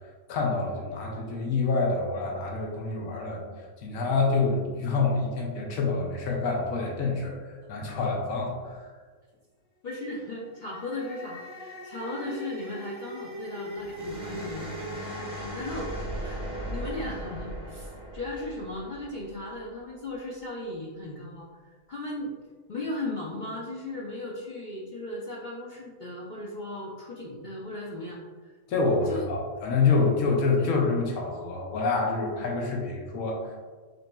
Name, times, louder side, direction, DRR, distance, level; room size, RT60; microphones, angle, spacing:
voice 1, 0.3-3.4 3.8-8.9 28.7-33.6, left 3 dB, 85° left, -1 dB, 1.1 m, -27 dB
voice 2, 9.8-15.9 16.2-16.4 16.7-22.3 22.7-28.5 29.1-29.2 30.6-30.7, left 2 dB, 65° left, -4 dB, 0.4 m, -37 dB
sound 1, 10.4-19.7, equal, 5° right, 0.7 m, -38 dB
5.1 x 3.0 x 2.2 m, 1.5 s
omnidirectional pair, 1.4 m